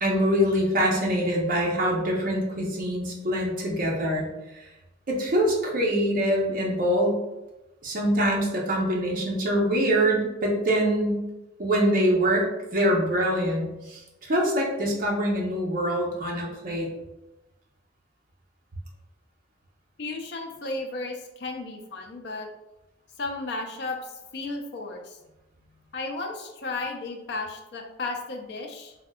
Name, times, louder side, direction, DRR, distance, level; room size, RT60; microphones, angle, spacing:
voice 1, 0.0-4.3 5.1-7.2 7.8-11.2 11.6-12.5 12.7-16.9, equal, 50° right, -1 dB, 0.6 m, -24 dB
voice 2, 20.0-22.5 23.2-25.2 25.9-28.9, left 3 dB, 65° left, 3 dB, 0.5 m, -34 dB
3.4 x 2.6 x 2.3 m, 0.98 s
head